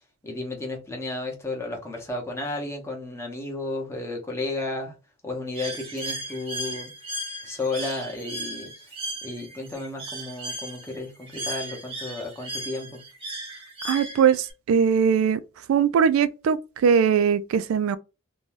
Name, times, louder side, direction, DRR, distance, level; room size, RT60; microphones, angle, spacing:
voice 1, 0.2-5.0 5.2-6.9 7.4-8.7 9.2-13.0, left 2 dB, 15° left, 0.8 m, -33 dB
Bird, 5.5-14.5, right 1 dB, 25° right, 0.8 m, -36 dB
voice 2, 13.8-15.4 15.7-18.0, right 7 dB, 80° right, 0.3 m, -21 dB
2.6 x 2.2 x 3.1 m
head